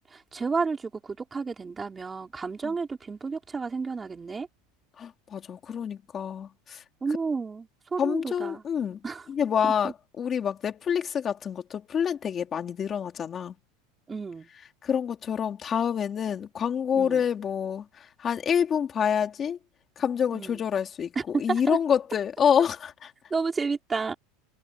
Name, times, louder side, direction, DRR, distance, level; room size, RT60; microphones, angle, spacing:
voice 1, 0.1-4.5 7.0-8.6 9.0-9.3 9.6-9.9 14.1-14.5 16.9-17.3 20.3-20.6 21.1-21.8 23.3-24.1, right 4 dB, 15° right, 4.8 m, -31 dB
voice 2, 5.0-6.8 8.0-9.0 9.3-13.5 14.8-19.6 20.0-22.9, left 8 dB, 25° left, 3.1 m, -27 dB
supercardioid pair, 150°, 0 cm